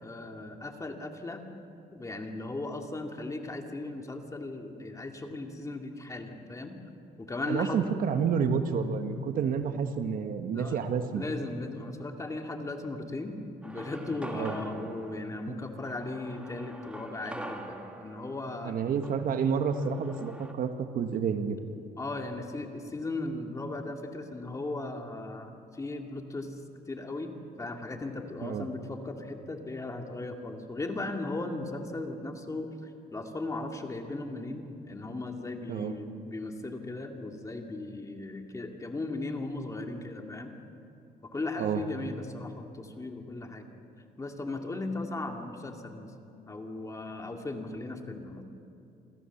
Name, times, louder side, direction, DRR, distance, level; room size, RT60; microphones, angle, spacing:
voice 1, 0.0-1.4 1.9-6.8 7.2-7.8 10.5-10.8 11.1-13.4 13.6-18.8 22.0-26.5 26.9-27.3 27.6-40.5 41.2-43.7 44.2-46.1 46.5-48.4, left 2 dB, 20° left, 3 dB, 2.1 m, -37 dB
voice 2, 7.5-11.2 14.3-14.6 18.6-20.7 20.9-21.6 28.4-28.6 35.7-35.9 41.6-41.8, right 6 dB, 55° right, 7 dB, 1.4 m, -29 dB
sound 1, 13.6-20.5, right 1 dB, 5° right, 1.8 m, -45 dB
27.5 x 14.5 x 7.2 m, 2.6 s
cardioid pair, 110°, 17 cm